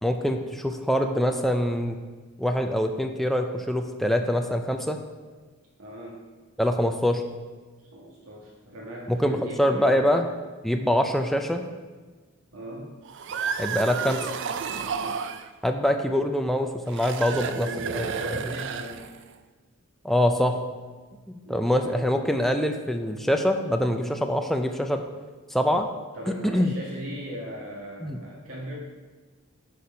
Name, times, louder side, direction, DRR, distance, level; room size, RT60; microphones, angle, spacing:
voice 1, 0.0-2.0 2.4-5.0 6.6-7.2 9.1-10.3 10.6-11.6 13.6-14.3 15.6-18.4 20.0-20.6 21.3-25.0 25.5-25.9 26.3-26.7 28.0-28.2, equal, ahead, 4 dB, 0.5 m, -24 dB
voice 2, 5.8-6.2 7.9-10.1 12.5-12.9 14.7-15.2 17.4-19.1 21.4-22.1 26.1-28.7, equal, 85° right, -4 dB, 1.6 m, -39 dB
sound 1, 13.0-15.5 16.9-19.3, right 6 dB, 60° right, 0.4 m, -31 dB
9.5 x 4.4 x 5.3 m, 1.4 s
head